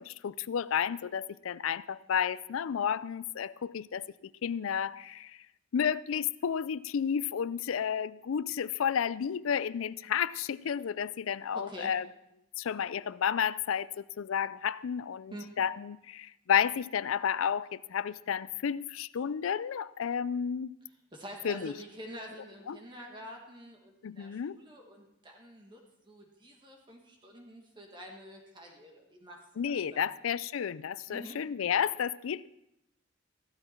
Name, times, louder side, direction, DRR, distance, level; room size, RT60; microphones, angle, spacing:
voice 1, 0.0-4.1 4.4-5.4 5.7-12.1 12.6-20.7 21.4-21.7 22.7-22.8 24.0-24.6 29.6-32.5, left 8 dB, 75° left, 0.4 m, -31 dB
voice 2, 11.5-11.9 15.3-15.4 21.1-30.1 31.1-31.4, equal, 20° right, 1.6 m, -47 dB
14.5 x 12.5 x 4.4 m
head